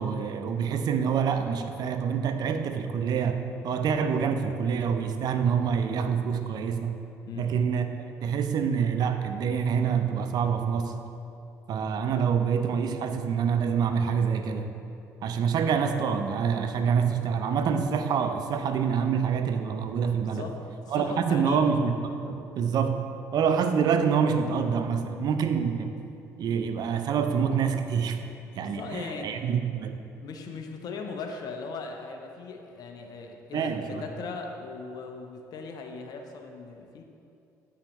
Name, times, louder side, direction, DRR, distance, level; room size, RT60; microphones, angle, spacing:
voice 1, 0.0-7.0 7.4-7.9 8.2-11.0 11.7-14.7 15.2-20.5 20.9-23.0 23.3-25.9 26.4-28.2 28.5-30.0 33.5-34.0, right 6 dB, 55° right, 7 dB, 0.5 m, -26 dB
voice 2, 20.2-21.7 28.5-29.4 30.2-37.0, left 4 dB, 55° left, 3 dB, 0.7 m, -39 dB
8.1 x 5.7 x 3.1 m, 2.6 s
hypercardioid pair, 55°, 8 cm